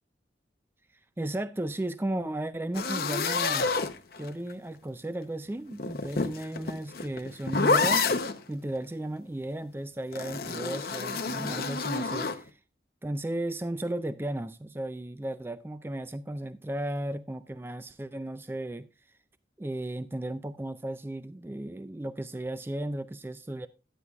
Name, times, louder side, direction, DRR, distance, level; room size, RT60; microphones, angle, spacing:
voice 1, 1.2-3.7 4.2-8.1 8.5-12.5 13.0-18.9 19.6-23.7, right 1 dB, 10° right, 0.3 m, -35 dB
sound 1, 2.7-4.5 5.7-8.4 10.1-12.4, left 4 dB, 55° left, 0.7 m, -28 dB
10.0 x 9.4 x 2.3 m
head